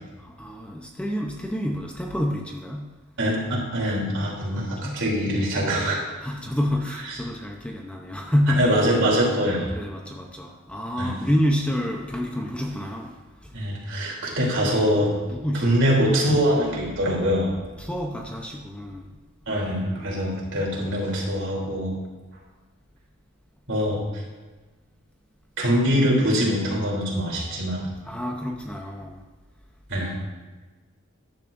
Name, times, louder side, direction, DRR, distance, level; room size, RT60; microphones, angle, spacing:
voice 1, 0.2-3.0 4.5-5.0 6.2-8.7 9.7-13.5 15.3-15.7 17.8-19.0 20.0-20.3 28.0-29.2, equal, 5° left, 1 dB, 0.8 m, -28 dB
voice 2, 3.2-6.0 8.5-9.7 11.0-11.2 13.5-15.1 15.5-17.5 19.5-21.9 23.7-24.0 25.6-27.9 29.9-30.1, equal, 60° right, -2 dB, 3.3 m, -23 dB
13.5 x 11.0 x 2.6 m, 1.3 s
head